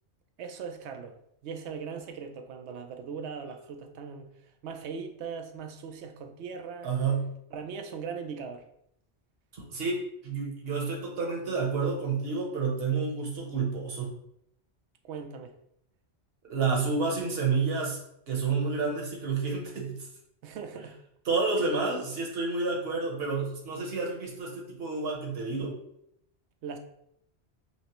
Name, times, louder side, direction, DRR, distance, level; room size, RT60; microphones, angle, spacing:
voice 1, 0.4-6.9 7.5-8.7 15.0-15.5 20.4-21.0 21.6-21.8 26.6-26.8, right 6 dB, 80° right, 5 dB, 0.9 m, -40 dB
voice 2, 6.8-7.3 9.7-14.1 16.5-18.0 18.3-20.1 21.3-25.8, right 4 dB, 65° right, 0 dB, 1.1 m, -29 dB
5.7 x 2.0 x 3.0 m, 0.74 s
omnidirectional pair, 1.1 m